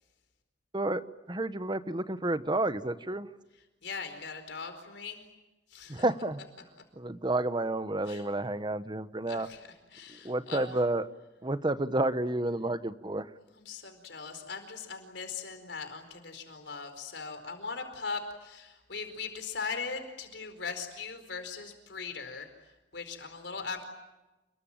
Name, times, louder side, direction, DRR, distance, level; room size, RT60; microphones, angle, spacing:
voice 1, 0.7-3.3 5.9-6.4 7.0-9.5 10.2-11.1 11.4-13.3, right 2 dB, 25° right, 12 dB, 1.1 m, -30 dB
voice 2, 3.8-5.2 5.7-6.0 8.1-8.3 9.3-9.6 9.9-10.8 13.5-23.9, left 5 dB, 70° left, 7 dB, 4.6 m, -40 dB
29.0 x 22.0 x 9.0 m, 1.1 s
head